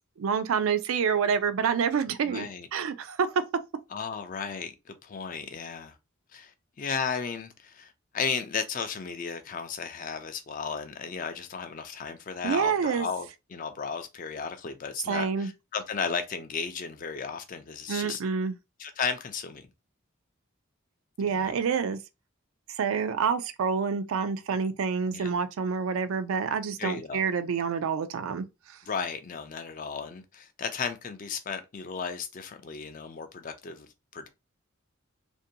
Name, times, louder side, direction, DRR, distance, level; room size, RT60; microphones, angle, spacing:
voice 1, 0.2-3.3 12.4-13.1 15.1-15.5 17.9-18.6 21.2-22.0 22.8-28.8, right 6 dB, 75° right, 0.4 m, -28 dB
voice 2, 2.2-2.7 3.9-5.9 6.3-6.5 6.8-18.2 18.8-19.7 21.3-21.6 25.1-25.4 26.8-27.2 28.8-34.3, left 5 dB, 40° left, 0.4 m, -34 dB
2.5 x 2.2 x 2.7 m
head